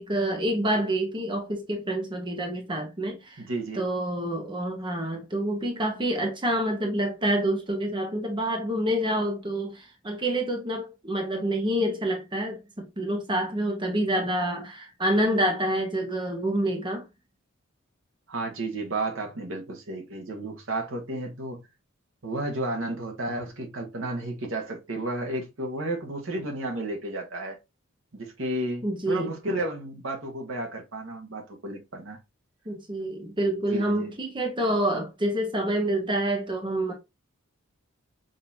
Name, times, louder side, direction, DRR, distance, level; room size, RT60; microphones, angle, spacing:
voice 1, 0.0-3.4 3.7-17.1 28.8-29.3 32.7-36.9, right 1 dB, 25° right, 0.9 m, -27 dB
voice 2, 3.4-3.8 18.3-21.6 22.2-27.6 28.1-32.2 33.7-34.1, right 2 dB, 70° right, 1.2 m, -32 dB
5.3 x 2.8 x 2.7 m
head